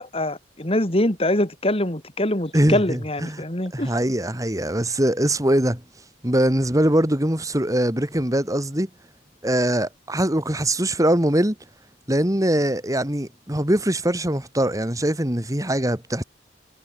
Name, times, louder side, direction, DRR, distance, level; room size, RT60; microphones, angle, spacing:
voice 1, 0.0-3.9, left 1 dB, 30° left, 3.1 m, -24 dB
voice 2, 2.5-3.4 3.7-5.8 6.2-8.9 9.4-11.5 12.1-16.2, right 1 dB, 20° right, 2.7 m, -22 dB
head